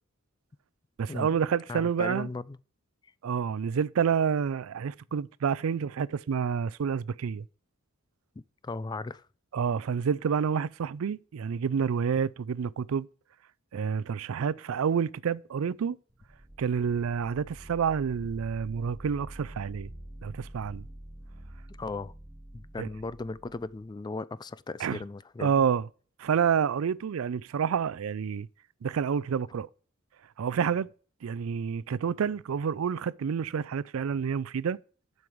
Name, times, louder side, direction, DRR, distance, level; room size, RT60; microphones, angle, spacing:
voice 1, 1.0-2.3 3.2-7.4 9.5-13.1 13.7-16.0 16.6-19.9 20.2-20.9 22.8-22.9 24.8-25.0 25.4-25.9 26.2-28.5 28.8-29.7 30.4-30.9 31.2-34.8, right 7 dB, 85° right, 0.4 m, -28 dB
voice 2, 1.7-2.6 8.6-9.2 21.7-22.1 22.5-25.5, left 3 dB, 20° left, 0.3 m, -37 dB
sound 1, 16.1-23.9, right 1 dB, 10° right, 0.8 m, -47 dB
7.7 x 5.4 x 6.3 m
head